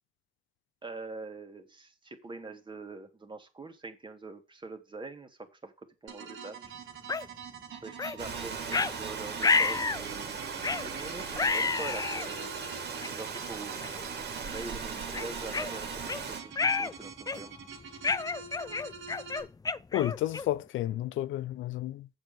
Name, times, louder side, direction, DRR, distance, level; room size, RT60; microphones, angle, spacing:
voice 1, 0.8-5.7 6.0-6.7 7.8-10.6 10.8-12.5 13.2-13.8 14.5-17.6, right 3 dB, 25° right, 2.1 m, -44 dB
sound 1, 6.1-19.4, right 6 dB, 75° right, 2.2 m, -45 dB
sound 2, 7.1-7.2 8.0-8.2 8.7-8.9 9.4-10.0 10.6-10.9 11.4-12.3 13.0-13.1 13.8-14.0 14.5-14.6 15.1-16.2 16.6-16.9 17.3-17.6 18.0-20.6, left 4 dB, 20° left, 0.4 m, -29 dB
Rain, 8.2-16.4, right 5 dB, 60° right, 2.4 m, -38 dB
voice 2, 19.9-22.1, left 14 dB, 80° left, 0.6 m, -31 dB
7.9 x 7.3 x 5.4 m
cardioid pair, 90°, 20 cm